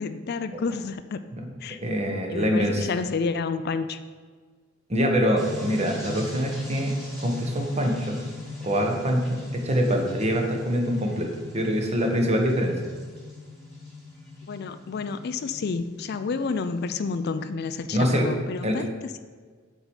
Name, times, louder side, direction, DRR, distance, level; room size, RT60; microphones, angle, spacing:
voice 1, 0.0-1.2 1.6-1.8 2.3-4.0 9.9-10.0 14.5-19.2, left 4 dB, 50° left, 11 dB, 0.4 m, -30 dB
voice 2, 1.8-2.9 4.9-8.2 8.6-12.8 17.9-18.3 18.6-18.8, equal, 30° right, 2 dB, 1.3 m, -24 dB
sound 1, 5.4-17.5, left 3 dB, ahead, 2.3 m, -40 dB
7.9 x 4.7 x 7.2 m, 1.5 s
head